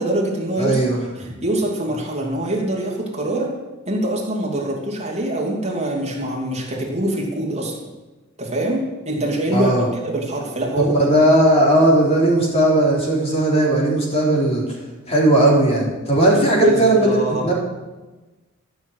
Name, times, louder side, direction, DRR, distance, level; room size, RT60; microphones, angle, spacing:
voice 1, 0.0-0.8 1.1-3.6 3.9-7.9 8.4-11.0 16.6-17.5, right 1 dB, 30° right, -1 dB, 2.6 m, -24 dB
voice 2, 0.6-1.0 9.5-9.9 10.8-14.6 15.1-17.2 17.4-17.5, right 1 dB, 30° left, -2 dB, 3.5 m, -17 dB
14.0 x 6.3 x 8.1 m, 1.2 s
head